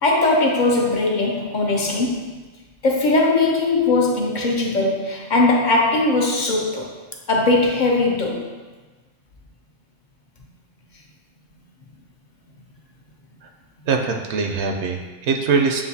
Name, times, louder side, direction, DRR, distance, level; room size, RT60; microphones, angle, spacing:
voice 1, 0.0-2.4 2.8-6.9 7.3-8.5, left 2 dB, 50° left, -1 dB, 0.6 m, -19 dB
voice 2, 13.9-15.8, right 4 dB, 75° right, 3 dB, 0.9 m, -22 dB
7.1 x 2.6 x 2.7 m, 1.3 s
omnidirectional pair, 1.2 m